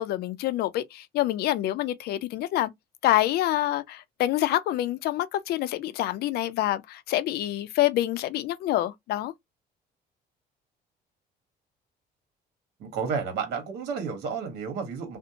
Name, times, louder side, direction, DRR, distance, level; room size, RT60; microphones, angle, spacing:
voice 1, 0.0-2.7 3.0-9.3, left 14 dB, 70° left, 0.4 m, -26 dB
voice 2, 12.8-15.2, right 5 dB, 80° right, 1.2 m, -31 dB
2.6 x 2.1 x 2.7 m
cardioid pair, 110°, 17 cm